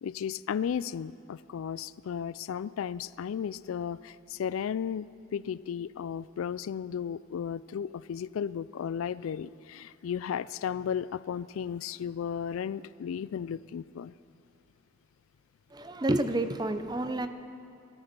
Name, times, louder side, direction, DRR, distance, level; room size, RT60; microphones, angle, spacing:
voice 1, 0.0-14.1, left 8 dB, 85° left, 0.3 m, -34 dB
voice 2, 15.7-17.3, right 1 dB, 20° right, 0.5 m, -29 dB
17.5 x 13.5 x 5.3 m
head